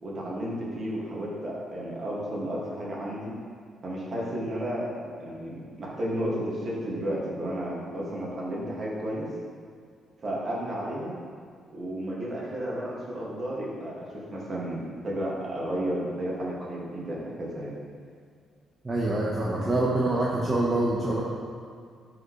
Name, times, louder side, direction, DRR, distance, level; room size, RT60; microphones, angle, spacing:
voice 1, 0.0-3.3 3.8-9.3 10.2-11.1 11.7-17.8, right 1 dB, 40° right, -5 dB, 2.1 m, -32 dB
voice 2, 18.8-21.2, right 2 dB, 20° right, -6 dB, 1.1 m, -25 dB
12.5 x 5.1 x 3.3 m, 2.1 s
cardioid pair, 115°, 0 cm